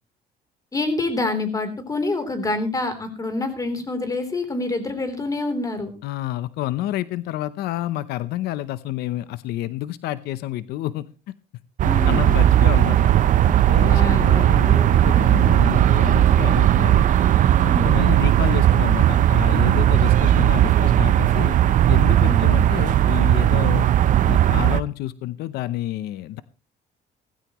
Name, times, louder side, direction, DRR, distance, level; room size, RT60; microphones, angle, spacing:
voice 1, 0.7-5.9 11.8-12.3 13.9-15.5 17.7-18.1 22.2-22.6, left 2 dB, 20° left, 8 dB, 3.5 m, -27 dB
voice 2, 6.0-11.1 12.0-13.1 13.4-17.1 17.6-21.6 21.9-23.9 24.3-26.4, left 14 dB, 90° left, 16 dB, 0.8 m, -29 dB
sound 1, 11.8-24.8, right 11 dB, 55° right, 0.7 m, -17 dB
16.5 x 15.5 x 3.1 m, 0.32 s
cardioid pair, 130°, 16 cm